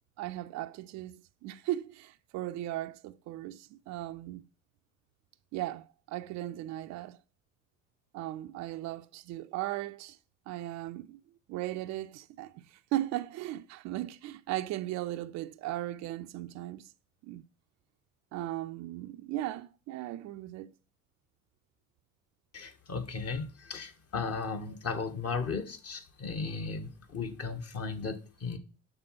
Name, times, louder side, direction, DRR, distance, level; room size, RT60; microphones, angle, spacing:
voice 1, 0.2-4.4 5.5-7.2 8.1-10.2 10.5-11.2 11.5-16.9 17.2-17.4 18.3-20.7, right 15 dB, 45° right, 0.4 m, -37 dB
voice 2, 22.5-28.6, left 4 dB, 35° left, 1.2 m, -36 dB
6.7 x 3.6 x 5.7 m
figure-of-eight pair, 55°, 41 cm